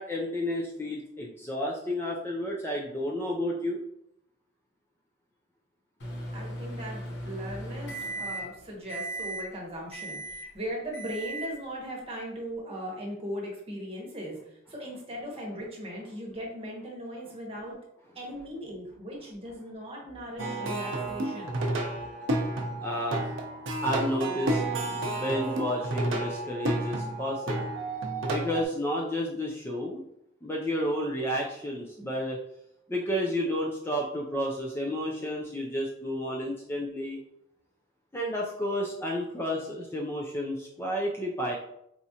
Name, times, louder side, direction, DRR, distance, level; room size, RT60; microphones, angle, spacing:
voice 1, 0.0-3.8 22.1-23.3 23.8-24.6 24.9-27.7 28.3-30.0 30.4-32.4 32.9-37.2 38.1-41.6, equal, 10° left, -2 dB, 0.3 m, -31 dB
Microwave oven, 6.0-8.6 8.9-9.5 9.9-10.5 10.9-11.5, right 1 dB, 60° left, 0.9 m, -37 dB
voice 2, 6.3-17.8 18.1-21.6, equal, 30° right, -2 dB, 0.9 m, -38 dB
Plucked string instrument, 20.4-28.7, right 1 dB, 70° right, 0.6 m, -31 dB
4.3 x 2.4 x 2.7 m, 0.77 s
head